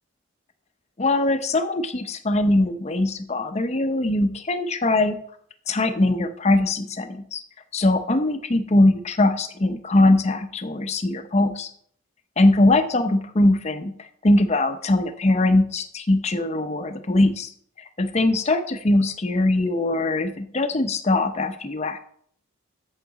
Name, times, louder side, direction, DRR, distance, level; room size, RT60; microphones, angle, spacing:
voice 1, 1.0-5.2 5.7-7.4 7.7-11.7 12.4-13.9 14.2-17.5 18.0-22.0, left 2 dB, 30° left, 9 dB, 0.6 m, -21 dB
8.4 x 7.2 x 4.0 m, 0.63 s
head